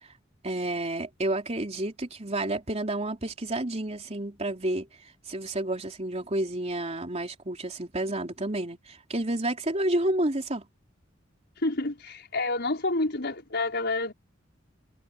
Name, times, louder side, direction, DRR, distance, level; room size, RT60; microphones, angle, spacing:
voice 1, 0.4-10.6, right 1 dB, 35° right, 3.7 m, -30 dB
voice 2, 11.6-14.1, left 2 dB, 55° left, 5.5 m, -28 dB
head